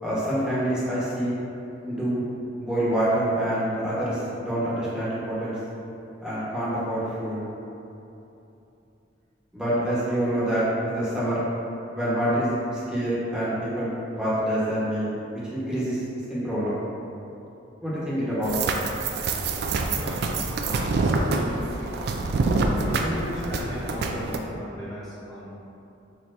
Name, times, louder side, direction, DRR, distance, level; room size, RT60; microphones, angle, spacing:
voice 1, 0.0-1.3 1.9-2.2 2.6-5.6 6.2-7.5 9.5-11.4 11.9-16.0 16.3-16.8 17.8-18.6, right 1 dB, 5° right, -11 dB, 1.0 m, -26 dB
sound 1, 18.4-24.4, right 3 dB, 55° right, 0.3 m, -26 dB
voice 2, 19.8-20.4 20.8-22.1 22.8-25.5, equal, 20° left, -11 dB, 0.7 m, -36 dB
6.3 x 2.8 x 2.5 m, 2.9 s
head